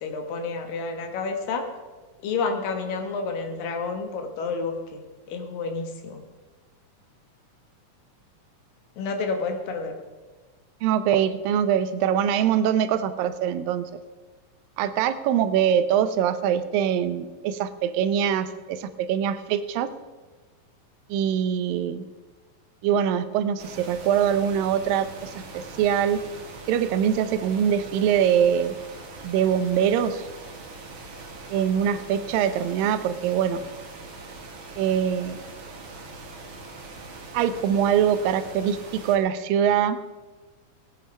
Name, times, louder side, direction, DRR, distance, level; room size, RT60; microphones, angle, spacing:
voice 1, 0.0-1.7 2.2-5.0 5.3-6.2 9.0-9.9, left 4 dB, 80° left, 6 dB, 3.1 m, -29 dB
voice 2, 10.8-13.9 14.8-19.9 21.1-22.0 22.8-26.2 26.7-28.7 29.2-30.2 31.5-33.6 34.8-35.4 37.3-40.0, right 9 dB, 85° right, 12 dB, 2.5 m, -23 dB
sound 1, 23.6-39.2, right 3 dB, 45° right, 2.0 m, -42 dB
18.0 x 9.3 x 5.3 m, 1.3 s
omnidirectional pair, 3.9 m